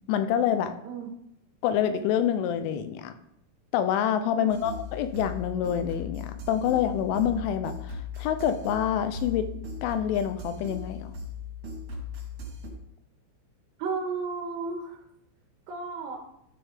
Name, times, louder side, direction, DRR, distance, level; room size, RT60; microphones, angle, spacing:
voice 1, 0.1-0.8 1.6-3.1 3.7-9.5 9.8-11.1, left 9 dB, 80° left, 9 dB, 2.8 m, -27 dB
voice 2, 4.3-4.8 13.8-15.0 15.7-16.3, right 4 dB, 70° right, 1 dB, 2.8 m, -33 dB
sound 1, 4.5-12.7, left 4 dB, 50° right, 3.6 m, -38 dB
13.5 x 6.6 x 3.4 m, 0.76 s
omnidirectional pair, 6.0 m